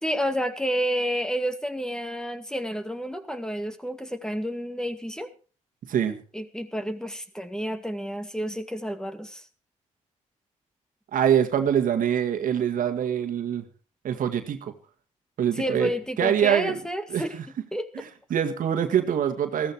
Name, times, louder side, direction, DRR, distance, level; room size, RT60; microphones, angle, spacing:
voice 1, 0.0-5.3 6.3-9.5 15.6-17.4 17.7-18.0, equal, 5° left, 9 dB, 2.1 m, -30 dB
voice 2, 5.9-6.2 11.1-13.6 14.0-14.7 15.4-15.9 16.2-16.8 17.1-17.2 18.0-19.7, right 9 dB, 75° right, 7 dB, 1.9 m, -24 dB
15.0 x 13.5 x 4.6 m, 0.37 s
supercardioid pair, 60°, 14 cm